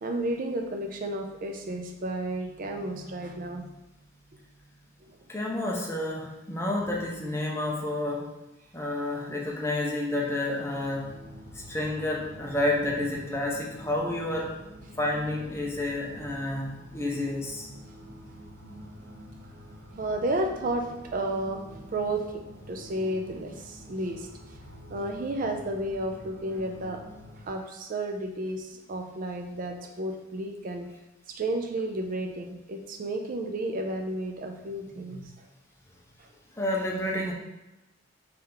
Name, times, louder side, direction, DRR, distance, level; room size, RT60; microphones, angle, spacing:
voice 1, 0.0-3.8 5.0-5.1 20.0-24.3 24.9-27.0 27.4-30.9 31.3-35.5 36.2-36.3, right 1 dB, 45° right, 4 dB, 0.4 m, -32 dB
voice 2, 5.3-8.3 8.7-11.1 11.5-14.5 15.0-17.7 35.1-35.2 36.6-37.3, left 1 dB, 15° left, -2 dB, 0.7 m, -30 dB
sound 1, 10.7-27.5, equal, 60° right, 1.0 m, -47 dB
4.2 x 3.3 x 3.8 m, 1.0 s
head